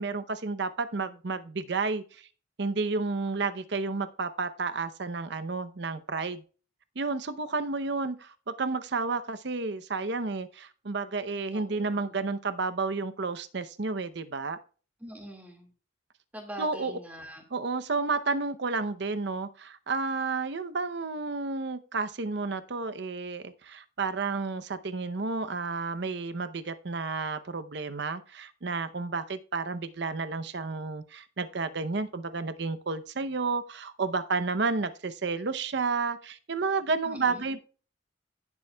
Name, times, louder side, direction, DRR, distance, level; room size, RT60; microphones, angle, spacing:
voice 1, 0.0-2.3 2.6-6.4 7.0-14.6 16.6-17.0 17.5-37.6, right 4 dB, 60° right, 0.7 m, -31 dB
voice 2, 11.5-12.1 15.0-15.7 16.3-17.4 37.1-37.4, right 1 dB, 10° right, 1.9 m, -43 dB
16.0 x 7.1 x 2.3 m
head